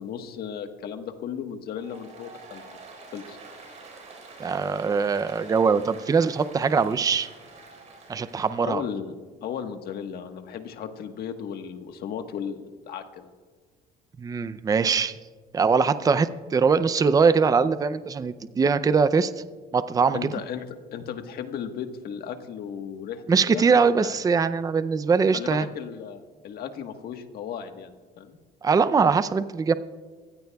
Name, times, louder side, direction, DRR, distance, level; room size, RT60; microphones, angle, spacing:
voice 1, 0.0-2.6 3.1-3.4 8.6-9.1 9.4-13.3 20.1-20.6 20.9-23.7 24.0-24.2 25.3-27.9 28.2-28.4, left 8 dB, 65° left, 6 dB, 1.4 m, -35 dB
Applause, 1.7-8.7, right 3 dB, 45° right, 4.9 m, -46 dB
voice 2, 4.4-7.3 8.1-8.8 14.2-15.2 15.5-19.3 19.7-20.3 23.3-25.7 28.6-29.7, right 5 dB, 20° right, 13 dB, 0.5 m, -22 dB
24.5 x 16.0 x 2.3 m, 1.5 s
cardioid pair, 110°, 17 cm